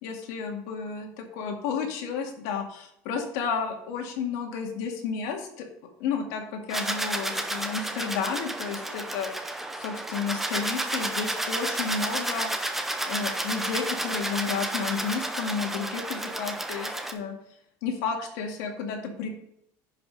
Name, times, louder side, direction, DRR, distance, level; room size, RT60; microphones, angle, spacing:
voice 1, 0.0-5.7 6.0-12.5 13.0-17.3 17.8-19.3, left 6 dB, 75° left, 2 dB, 2.2 m, -32 dB
sound 1, 6.7-17.1, right 1 dB, 5° right, 0.6 m, -31 dB
10.5 x 5.2 x 5.3 m, 0.75 s
cardioid pair, 175°, 9 cm